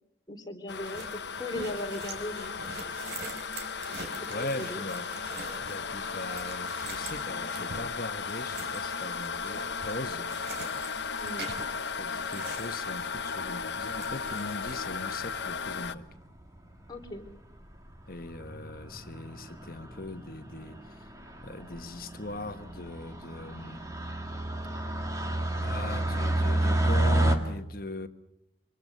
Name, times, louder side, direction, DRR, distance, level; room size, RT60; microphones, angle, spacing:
voice 1, 0.3-2.6 3.9-4.8 11.2-11.5 16.9-17.2, left 1 dB, 20° left, 3.5 m, -38 dB
sound 1, 0.7-15.9, left 5 dB, 70° left, 0.9 m, -35 dB
sound 2, 0.8-13.4 13.7-14.8, right 3 dB, 65° right, 3.8 m, -44 dB
voice 2, 4.3-5.1 5.6-10.3 12.0-16.0 18.1-20.8 21.4-23.8 24.9-25.1 25.6-28.1, left 2 dB, 50° left, 1.4 m, -40 dB
sound 3, 13.4-13.7 14.6-15.1 15.9-16.0 16.2-16.3 16.6-16.7 17.0-17.3 17.7-18.0 18.2-27.4, right 1 dB, 15° right, 2.0 m, -30 dB
26.0 x 25.0 x 6.8 m
head